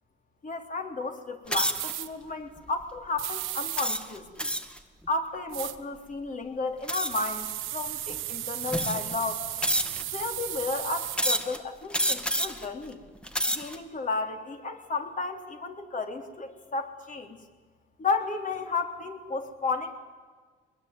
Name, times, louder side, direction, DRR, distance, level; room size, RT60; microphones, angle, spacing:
voice 1, 0.4-4.5 5.1-7.5 7.7-9.4 10.1-13.0 13.5-17.4 18.0-19.9, left 3 dB, 40° left, 5 dB, 3.5 m, -33 dB
sound 1, 1.5-1.9 2.6-2.8 3.8-4.8 6.9-7.3 8.1-8.2 8.7-9.2 9.6-10.2 11.1-11.6 11.9-12.7 13.2-13.8, equal, 5° left, 2.1 m, -28 dB
sound 2, 1.7-2.1 3.2-3.9 5.5-5.8 7.1-11.2, right 14 dB, 90° right, 1.2 m, -35 dB
22.5 x 21.0 x 9.5 m, 1.4 s
cardioid pair, 90°, 20 cm